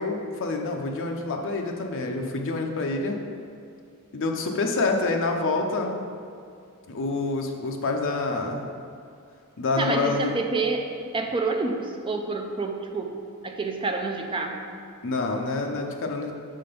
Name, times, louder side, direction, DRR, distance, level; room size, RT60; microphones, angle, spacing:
voice 1, 0.0-3.2 4.1-6.0 6.9-8.7 9.6-10.4 15.0-16.3, left 3 dB, 60° left, 2 dB, 0.7 m, -27 dB
voice 2, 9.8-10.8 11.1-14.6, right 3 dB, 25° right, 3 dB, 0.5 m, -28 dB
6.7 x 3.8 x 5.1 m, 2.4 s
head